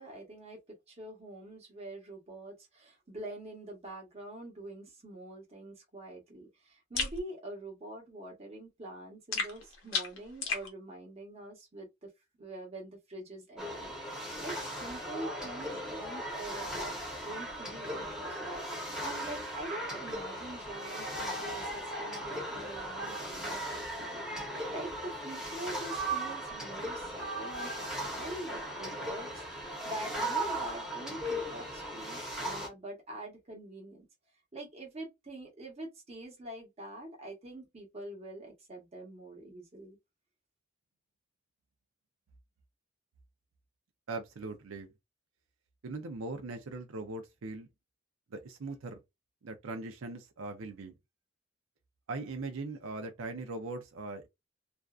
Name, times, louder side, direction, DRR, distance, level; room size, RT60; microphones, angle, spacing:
voice 1, 0.0-12.1 12.4-17.0 17.2-27.9 28.2-34.1 34.5-40.0, right 1 dB, 30° right, 1.0 m, -45 dB
sound 1, 7.0-7.2 9.3-10.7, left 5 dB, 75° left, 0.9 m, -33 dB
sound 2, 13.6-32.7, right 1 dB, 5° right, 0.8 m, -37 dB
voice 2, 44.1-44.9 45.8-47.7 48.3-49.0 49.4-50.9 52.1-54.3, right 3 dB, 85° right, 0.5 m, -40 dB
2.5 x 2.2 x 2.3 m
head